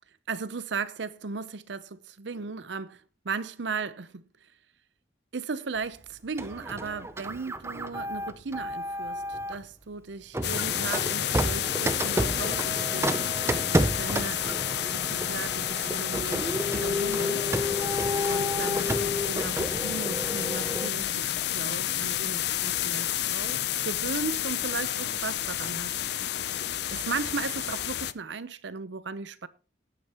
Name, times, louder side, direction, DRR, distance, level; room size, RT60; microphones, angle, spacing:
voice 1, 0.3-4.2 5.3-13.5 14.0-17.5 18.3-26.0 26.9-29.5, right 4 dB, 75° right, 0.7 m, -36 dB
Printer, 6.4-9.6 10.3-20.9, equal, 15° right, 0.5 m, -31 dB
sound 1, 10.4-28.1, left 11 dB, 65° left, 0.5 m, -30 dB
19.0 x 8.7 x 2.9 m
head